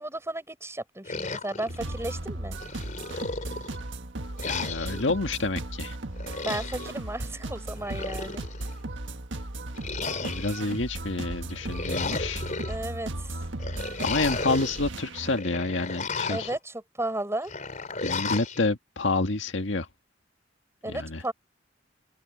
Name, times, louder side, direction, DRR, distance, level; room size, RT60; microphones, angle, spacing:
voice 1, 0.0-2.6 6.4-8.4 12.7-13.4 16.3-17.5 20.8-21.3, right 1 dB, 15° right, 6.8 m, -34 dB
sound 1, 1.0-2.2 2.6-3.8 4.4-5.1 6.2-6.9 7.7-8.7 9.7-10.8 11.5-12.7 13.6-14.8 15.2-16.6 17.4-18.6, left 4 dB, 40° left, 3.7 m, -34 dB
sound 2, 1.7-15.4, right 2 dB, 75° right, 1.6 m, -36 dB
voice 2, 4.5-6.0 10.2-12.4 14.0-16.5 18.0-19.9 20.9-21.2, left 3 dB, 75° left, 1.7 m, -28 dB
open air
head